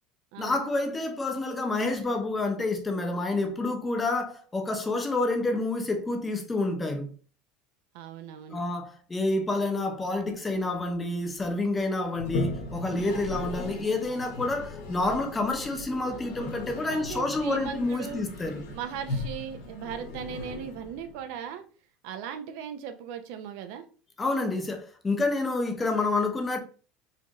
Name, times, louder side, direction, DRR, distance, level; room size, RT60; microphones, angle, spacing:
voice 1, 0.4-7.1 8.5-18.7 24.2-26.6, left 2 dB, 15° left, 0.7 m, -28 dB
voice 2, 7.9-8.6 16.9-18.3 18.7-21.6 22.0-23.8, right 8 dB, 70° right, 0.6 m, -38 dB
Toilet flush, 12.1-21.2, left 2 dB, 80° left, 1.1 m, -37 dB
4.2 x 2.5 x 3.0 m
supercardioid pair, 135°, 0 cm